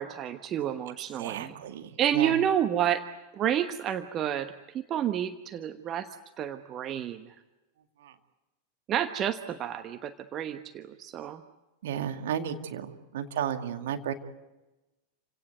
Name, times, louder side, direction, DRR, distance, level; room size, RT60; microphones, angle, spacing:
voice 1, 0.0-1.5 2.0-3.0 3.4-6.1 6.4-7.2 8.9-11.4, right 10 dB, 30° right, 9 dB, 1.2 m, -29 dB
voice 2, 1.2-2.3 8.0-8.1 11.8-14.1, right 9 dB, 55° right, 6 dB, 2.2 m, -33 dB
29.0 x 17.5 x 9.3 m, 1.1 s
figure-of-eight pair, 90°, 0 cm